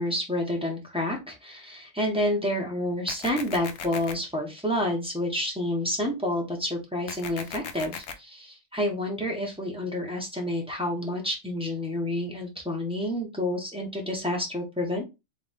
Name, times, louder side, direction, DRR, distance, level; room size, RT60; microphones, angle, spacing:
voice 1, 0.0-15.0, left 1 dB, 5° right, -1 dB, 1.2 m, -29 dB
sound 1, 3.1-4.1 7.1-8.1, left 6 dB, 65° left, 0.9 m, -37 dB
3.5 x 3.3 x 3.5 m, 0.24 s
omnidirectional pair, 1.4 m